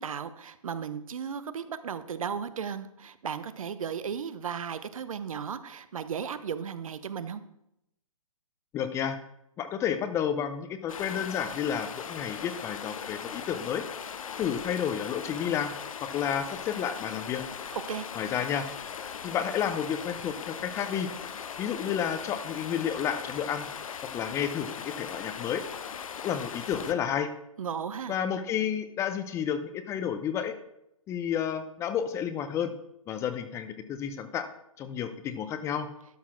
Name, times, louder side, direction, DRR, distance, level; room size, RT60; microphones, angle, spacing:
voice 1, 0.0-7.4 17.9-18.1 27.6-28.2, right 7 dB, 70° right, 13 dB, 0.8 m, -35 dB
voice 2, 8.7-9.2 9.6-13.8 14.4-15.7 16.1-17.4 18.2-18.7 19.2-21.1 21.6-23.7 24.1-25.6 26.2-27.3 28.1-30.5 31.1-32.7 33.1-34.5 34.8-35.9, left 8 dB, 15° left, 10 dB, 0.5 m, -31 dB
Stream, 10.9-26.9, left 7 dB, 65° left, 0.8 m, -39 dB
12.5 x 4.2 x 5.8 m, 0.80 s
hypercardioid pair, 135°, 18 cm